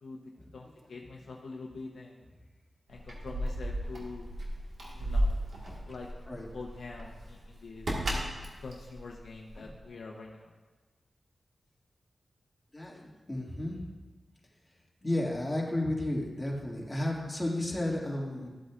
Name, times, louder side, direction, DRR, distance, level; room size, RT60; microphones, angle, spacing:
voice 1, 0.0-2.3 2.9-4.3 4.9-5.4 5.9-6.1 6.5-7.9 8.6-10.5, left 3 dB, 80° left, -1 dB, 0.8 m, -45 dB
Keys jangling, 2.9-9.8, equal, 75° right, 1.6 m, -34 dB
voice 2, 12.7-13.9 15.0-18.5, left 1 dB, 15° left, -3 dB, 2.2 m, -33 dB
13.5 x 8.0 x 2.5 m, 1.3 s
cardioid pair, 65°, 0 cm